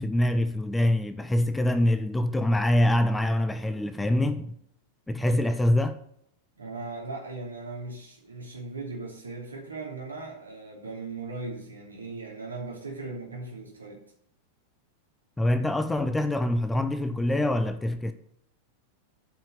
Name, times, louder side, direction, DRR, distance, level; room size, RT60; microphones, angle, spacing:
voice 1, 0.0-4.5 5.1-6.0 15.4-18.1, left 1 dB, 5° left, 0.7 m, -25 dB
voice 2, 6.6-14.0, right 3 dB, 75° right, 2.9 m, -38 dB
8.7 x 5.6 x 7.0 m
figure-of-eight pair, 90°, 0 cm